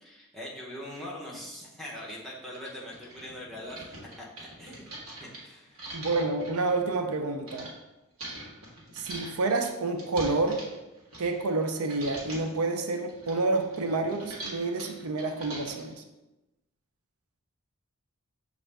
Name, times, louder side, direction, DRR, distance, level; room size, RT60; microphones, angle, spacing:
voice 1, 0.0-4.9 5.2-5.9, left 1 dB, ahead, -5 dB, 0.8 m, -42 dB
sound 1, 1.4-1.5 2.1-2.2 2.5-7.7 8.2-11.6 11.9-12.6 12.9-15.9, right 1 dB, 70° right, 1.4 m, -43 dB
voice 2, 5.9-7.7 8.9-10.6 11.2-16.0, right 3 dB, 85° right, 6 dB, 0.5 m, -29 dB
6.2 x 2.5 x 3.3 m, 1.0 s
head